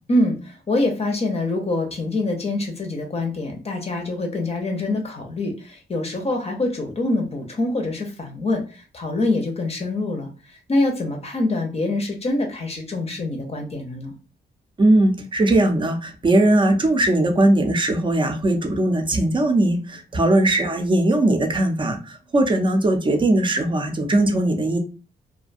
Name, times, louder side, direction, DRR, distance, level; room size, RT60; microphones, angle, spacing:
voice 1, 0.1-14.1, left 2 dB, 35° left, 2 dB, 0.6 m, -25 dB
voice 2, 14.8-24.8, right 1 dB, 25° right, 6 dB, 0.5 m, -19 dB
2.4 x 2.2 x 2.5 m, 0.34 s
cardioid pair, 85°, 18 cm